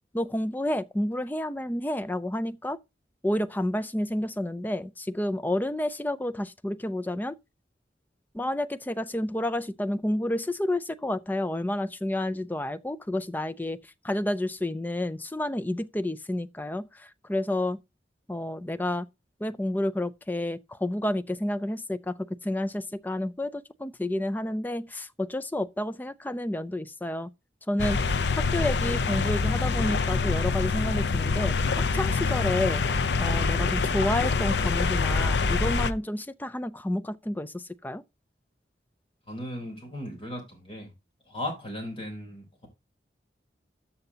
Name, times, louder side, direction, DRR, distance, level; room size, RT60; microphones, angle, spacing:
voice 1, 0.1-2.8 3.2-7.4 8.3-17.8 18.3-19.1 19.4-22.2 22.4-27.3 27.7-32.8 33.2-38.0, left 1 dB, 10° left, 0.4 m, -30 dB
sound 1, 27.8-35.9, left 4 dB, 80° left, 0.6 m, -25 dB
voice 2, 39.3-40.9 41.3-42.7, left 1 dB, 30° left, 3.6 m, -37 dB
13.5 x 7.0 x 2.8 m
head